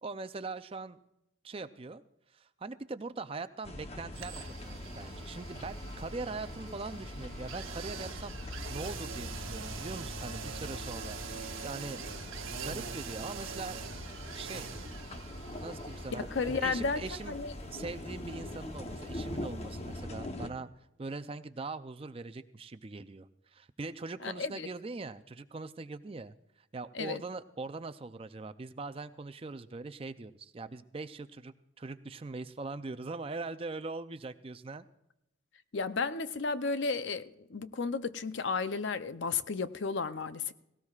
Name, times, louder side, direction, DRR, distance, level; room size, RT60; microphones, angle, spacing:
voice 1, 0.0-1.0 1.4-2.0 2.3-8.4 8.7-11.2 11.6-12.0 12.6-13.8 14.3-14.7 15.6-17.3 17.7-20.7 21.0-26.3 26.7-34.9, right 3 dB, 30° right, 0.5 m, -41 dB
sound 1, 3.6-20.5, left 1 dB, 30° left, 0.9 m, -42 dB
sound 2, 4.1-20.0 20.2-20.3, right 6 dB, 90° right, 1.1 m, -45 dB
voice 2, 16.1-17.5 24.2-24.7 26.9-27.2 35.7-40.5, left 4 dB, 65° left, 0.6 m, -33 dB
18.0 x 17.5 x 2.4 m
head